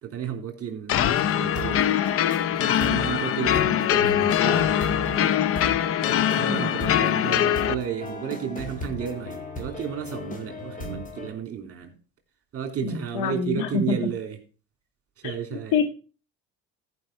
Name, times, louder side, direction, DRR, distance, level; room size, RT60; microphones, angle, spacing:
voice 1, 0.0-1.8 2.6-4.9 6.3-11.9 12.5-14.4 15.2-15.8, right 8 dB, 45° right, 4 dB, 3.1 m, -33 dB
sound 1, 0.9-7.7, left 10 dB, 45° left, 0.6 m, -23 dB
sound 2, 1.4-11.3, left 2 dB, 25° left, 2.1 m, -36 dB
voice 2, 6.4-6.7 12.8-14.0 15.2-15.3 15.7-15.9, left 5 dB, 80° left, 8 dB, 1.7 m, -26 dB
14.5 x 5.3 x 4.5 m, 0.37 s
cardioid pair, 100°, 32 cm